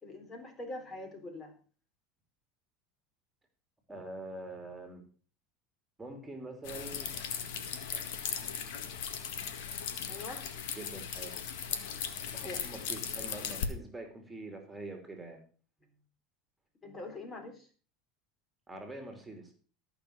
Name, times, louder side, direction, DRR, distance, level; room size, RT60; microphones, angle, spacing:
voice 1, 0.0-1.5 10.1-10.4 12.4-12.6 16.8-17.7, left 2 dB, 30° left, 5 dB, 3.7 m, -43 dB
voice 2, 3.9-5.0 6.0-7.1 10.7-11.3 12.1-15.4 18.7-19.5, right 2 dB, 10° right, 4 dB, 3.2 m, -44 dB
sound 1, 6.6-13.7, left 7 dB, 75° left, 1.8 m, -38 dB
14.0 x 6.0 x 6.6 m, 0.40 s
supercardioid pair, 100°, 0 cm